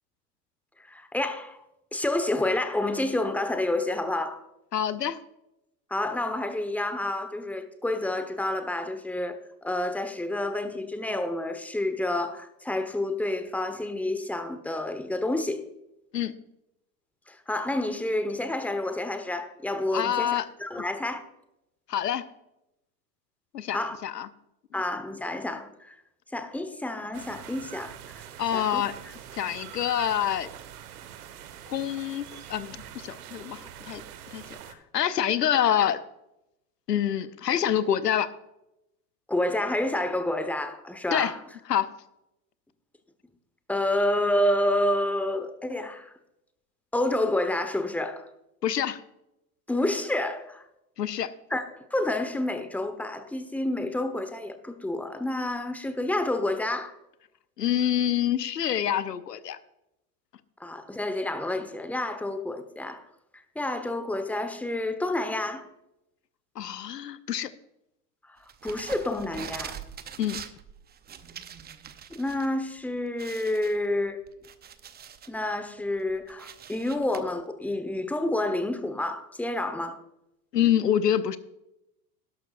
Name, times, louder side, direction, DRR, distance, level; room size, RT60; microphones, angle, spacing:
voice 1, 0.9-1.6 1.9-4.4 5.9-15.6 17.3-21.2 23.7-24.0 24.7-25.9 26.3-28.2 28.5-28.8 39.3-41.4 43.7-46.1 46.9-48.3 49.7-50.6 51.5-56.9 60.6-63.0 63.5-65.6 68.6-69.7 72.1-74.2 75.3-80.0, left 1 dB, 5° left, 1.1 m, -29 dB
voice 2, 4.7-5.2 16.1-16.3 19.9-20.5 21.9-22.2 23.5-24.3 24.7-24.8 28.4-29.0 29.3-30.5 31.7-34.0 34.3-36.0 36.9-38.3 41.1-41.3 41.7-41.9 48.6-49.0 51.0-51.3 57.6-59.6 66.6-67.5 70.2-70.4 80.5-81.4, left 10 dB, 90° left, 0.8 m, -26 dB
sound 1, 27.1-34.7, right 10 dB, 70° right, 1.4 m, -44 dB
sound 2, 68.5-72.5 72.8-72.9 73.2-75.4 75.8-77.2, right 8 dB, 20° right, 0.7 m, -43 dB
12.0 x 11.5 x 2.5 m
hypercardioid pair, 90°, 47 cm